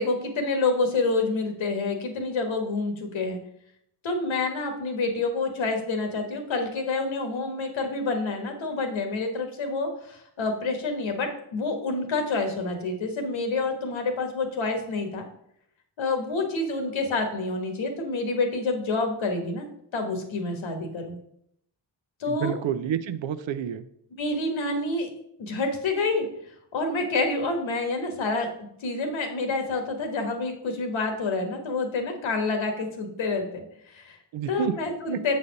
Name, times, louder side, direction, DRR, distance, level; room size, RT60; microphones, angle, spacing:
voice 1, 0.0-3.4 4.0-15.2 16.0-19.7 19.9-21.2 22.2-22.5 24.2-25.1 25.4-26.3 26.7-34.2 34.5-35.4, left 3 dB, 75° left, 5 dB, 1.5 m, -28 dB
voice 2, 22.3-23.9 34.3-34.7, right 9 dB, 70° right, 11 dB, 0.7 m, -29 dB
6.9 x 4.1 x 5.2 m, 0.72 s
supercardioid pair, 50°, 47 cm